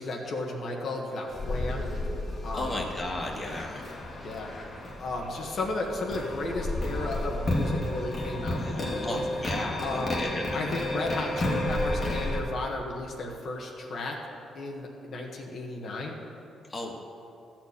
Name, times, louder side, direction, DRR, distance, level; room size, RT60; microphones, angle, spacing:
voice 1, 0.0-1.8 2.4-2.8 4.2-9.2 9.8-10.1 10.5-14.2 14.5-16.1, left 2 dB, 60° left, -1 dB, 1.4 m, -34 dB
sound 1, 1.3-12.4, left 1 dB, 40° left, 1.6 m, -32 dB
voice 2, 2.5-3.9 8.5-10.8 16.7-16.9, left 1 dB, 20° left, -1 dB, 1.6 m, -35 dB
13.5 x 4.5 x 8.6 m, 2.7 s
cardioid pair, 90°, 0 cm